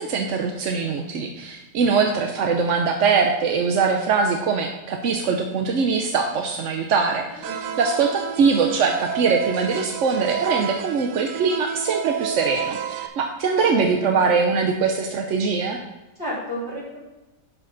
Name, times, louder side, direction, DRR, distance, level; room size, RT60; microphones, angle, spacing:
voice 1, 0.0-15.8, right 5 dB, 55° right, 3 dB, 0.9 m, -22 dB
voice 2, 7.4-7.7 13.7-14.2 16.2-17.0, left 1 dB, 35° right, -8 dB, 4.2 m, -31 dB
sound 1, 7.4-13.1, right 9 dB, 85° right, 1.4 m, -30 dB
11.5 x 6.3 x 4.0 m, 1.0 s
omnidirectional pair, 1.8 m